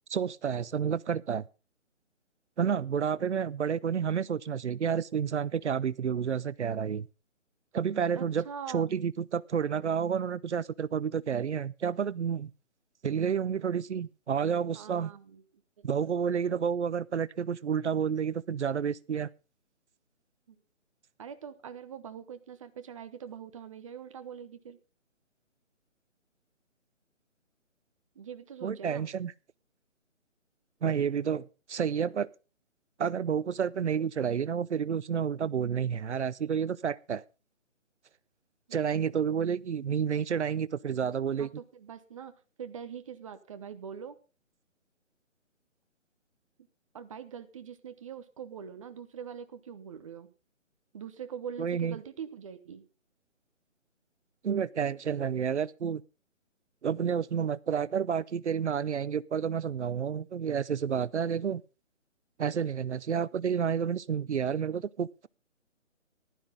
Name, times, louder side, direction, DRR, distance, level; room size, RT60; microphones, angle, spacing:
voice 1, 0.1-1.5 2.6-7.1 7.7-8.4 8.7-12.5 13.0-15.1 15.8-19.3 28.6-29.3 30.8-32.3 33.0-37.2 38.7-41.5 51.6-52.0 54.4-56.0 56.8-61.6 62.4-65.3, right 7 dB, 60° right, 0.7 m, -30 dB
voice 2, 8.1-9.0 14.7-15.4 16.0-16.2 20.5-20.6 21.2-24.8 28.1-29.1 41.4-42.3 42.6-44.2 46.9-50.3 50.9-52.9, right 7 dB, 25° right, 0.9 m, -43 dB
14.5 x 12.0 x 3.8 m
figure-of-eight pair, 150°, 39 cm